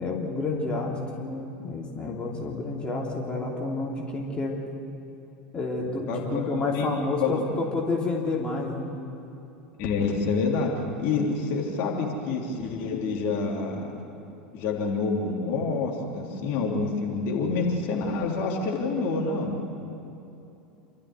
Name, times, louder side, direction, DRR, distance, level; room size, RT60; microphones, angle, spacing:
voice 1, 0.0-4.6 5.5-8.9, left 3 dB, 20° left, -2 dB, 3.2 m, -29 dB
voice 2, 6.1-6.9 7.2-7.4 9.8-10.7 11.0-13.9 14.5-19.6, left 4 dB, 50° left, -1 dB, 3.5 m, -27 dB
28.5 x 13.5 x 8.2 m, 2.9 s
figure-of-eight pair, 80°, 5 cm